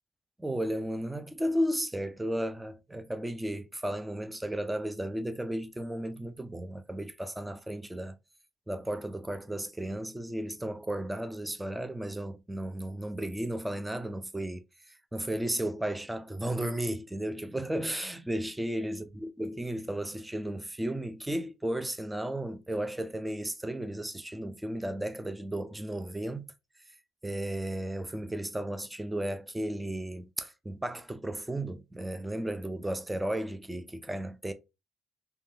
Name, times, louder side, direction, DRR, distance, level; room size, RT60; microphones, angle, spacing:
voice 1, 0.4-8.2 8.7-26.5 27.2-34.5, right 1 dB, 10° right, 0.4 m, -34 dB
3.4 x 2.2 x 2.6 m
cardioid pair, 90°, 0 cm